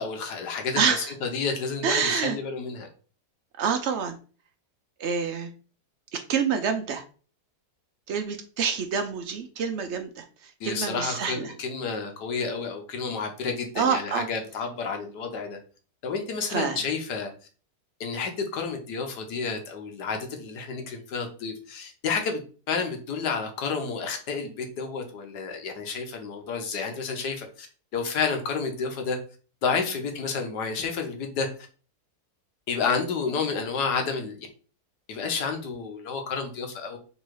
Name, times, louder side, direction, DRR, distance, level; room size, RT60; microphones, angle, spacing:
voice 1, 0.0-2.9 10.6-15.6 16.0-17.3 18.0-22.4 22.7-27.7 27.9-29.2 29.6-31.5 32.7-34.4 35.1-37.0, left 5 dB, 85° left, 4 dB, 1.5 m, -30 dB
voice 2, 0.8-1.1 1.8-2.4 3.6-4.2 5.0-5.5 6.1-7.0 8.1-11.5 13.8-14.3 16.5-16.8, right 6 dB, 70° right, 7 dB, 0.6 m, -27 dB
3.8 x 2.8 x 4.6 m, 0.38 s
omnidirectional pair, 1.7 m